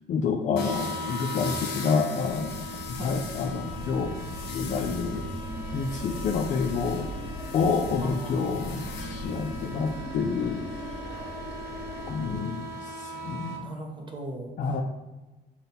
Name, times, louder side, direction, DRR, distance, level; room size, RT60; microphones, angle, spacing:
voice 1, 0.1-4.1 4.5-5.3 5.7-7.1 7.5-11.0 12.1-13.7 14.6-14.8, left 5 dB, 45° left, 2 dB, 0.4 m, -29 dB
sound 1, 0.5-13.6, left 1 dB, 75° left, 0.8 m, -38 dB
sound 2, 2.2-9.8, right 1 dB, 75° right, 0.7 m, -42 dB
Animal, 3.6-8.1 8.4-12.3, left 1 dB, 5° right, 0.9 m, -40 dB
voice 2, 8.0-8.9 13.6-14.5, right 1 dB, 30° right, 2 dB, 0.6 m, -38 dB
5.3 x 2.2 x 4.0 m, 1.1 s
cardioid pair, 110°, 17 cm